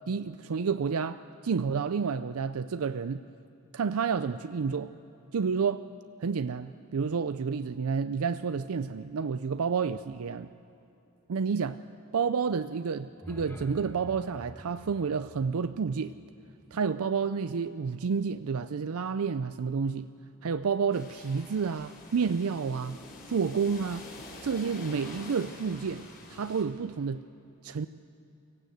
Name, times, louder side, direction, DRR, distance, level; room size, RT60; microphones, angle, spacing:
voice 1, 0.1-3.2 3.7-4.9 5.3-5.8 6.2-10.5 11.3-11.8 12.1-16.2 16.7-20.1 20.4-23.0 23.3-24.1 24.4-27.2 27.6-27.9, right 5 dB, 70° right, 12 dB, 0.5 m, -30 dB
sound 1, 13.0-17.1, equal, 10° left, 1.6 m, -49 dB
sound 2, 20.9-26.6, left 2 dB, 40° left, 5.4 m, -46 dB
24.0 x 17.5 x 7.9 m, 2.7 s
head